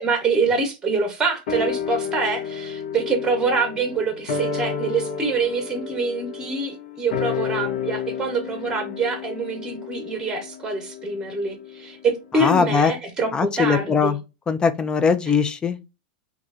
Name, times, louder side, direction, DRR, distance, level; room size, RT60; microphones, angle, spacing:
voice 1, 0.0-14.2, right 4 dB, 15° right, 0.9 m, -25 dB
sound 1, 1.5-12.1 12.3-12.4, left 6 dB, 65° left, 0.8 m, -31 dB
voice 2, 12.3-12.9 13.3-14.2 14.5-15.8, left 5 dB, 15° left, 0.3 m, -20 dB
3.1 x 2.4 x 2.5 m
supercardioid pair, 145°, 5 cm